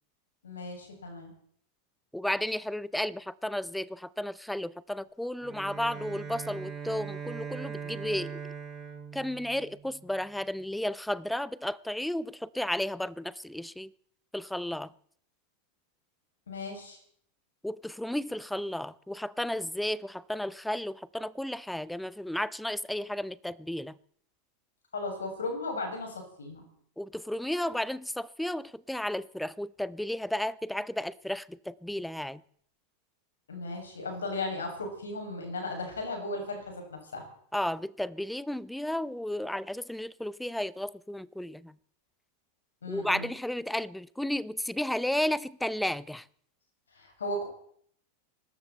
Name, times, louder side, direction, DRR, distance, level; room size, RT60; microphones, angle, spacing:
voice 1, 0.4-1.3 16.5-17.0 24.9-26.6 33.5-37.2 42.8-43.3 46.9-47.5, left 2 dB, 70° left, 7.1 m, -36 dB
voice 2, 2.1-8.4 9.1-13.9 14.3-14.9 17.6-24.0 27.0-32.4 37.5-41.7 42.9-46.3, left 1 dB, 5° left, 0.6 m, -33 dB
Bowed string instrument, 5.4-10.2, right 6 dB, 15° right, 5.3 m, -41 dB
24.0 x 13.5 x 4.4 m
figure-of-eight pair, 90°, 0 cm